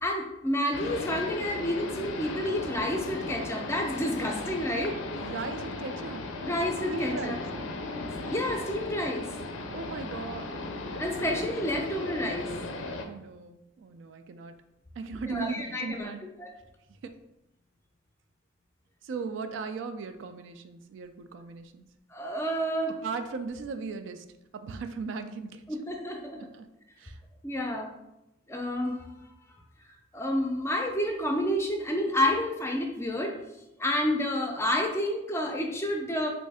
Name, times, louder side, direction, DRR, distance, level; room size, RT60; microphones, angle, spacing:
voice 1, 0.0-5.0 6.4-7.4 8.2-9.3 11.0-12.5 15.3-16.1 16.4-16.5 22.1-22.9 25.7-26.4 27.4-27.9 28.5-29.0 30.1-33.3 33.8-36.3, left 1 dB, 15° left, 2 dB, 0.4 m, -29 dB
sound 1, 0.7-13.0, left 2 dB, 80° left, 0.4 m, -37 dB
voice 2, 5.2-6.2 6.9-7.4 9.7-10.7 11.3-11.5 13.0-14.5 15.0-16.2 19.0-21.9 22.9-24.2 24.5-25.6 26.4-26.7 27.0-27.2, right 4 dB, 70° right, 9 dB, 0.3 m, -37 dB
3.2 x 2.6 x 3.4 m, 0.91 s
head